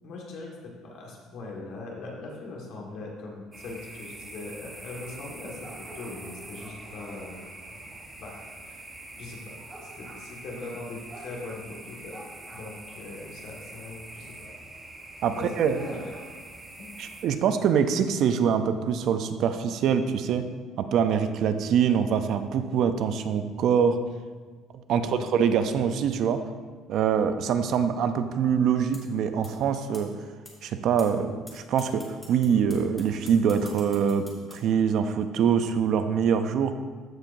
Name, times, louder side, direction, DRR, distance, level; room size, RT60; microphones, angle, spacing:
voice 1, 0.0-7.8 8.2-8.8 9.2-9.5 9.8-12.2 12.5-14.5 15.3-16.1 16.8-16.9 24.9-25.3, left 2 dB, 65° left, -2 dB, 1.6 m, -40 dB
sound 1, 3.5-17.2, right 2 dB, 20° right, 1.0 m, -44 dB
voice 2, 15.2-15.8 17.0-20.5 20.8-24.0 24.9-26.4 26.9-30.1 30.6-36.7, right 7 dB, 60° right, 9 dB, 0.5 m, -24 dB
sound 2, 28.9-29.0 29.4-29.5 29.9-30.0 30.4-30.5 31.0-31.1 31.5-31.6 31.8-34.5, left 2 dB, 15° left, 1.5 m, -45 dB
14.0 x 4.6 x 2.6 m, 1.5 s
cardioid pair, 125°, 0 cm